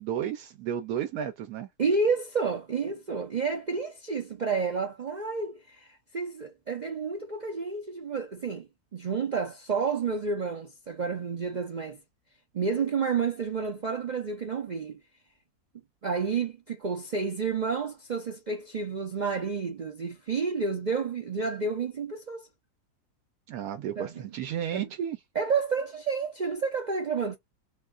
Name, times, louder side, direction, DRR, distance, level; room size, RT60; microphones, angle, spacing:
voice 1, 0.0-1.7 23.5-25.2, right 9 dB, 80° right, 1.1 m, -33 dB
voice 2, 1.8-12.0 12.5-15.0 16.0-22.5 24.0-24.3 24.7-24.9 25.3-27.4, right 5 dB, 60° right, 0.4 m, -30 dB
2.8 x 2.3 x 3.6 m
omnidirectional pair, 1.7 m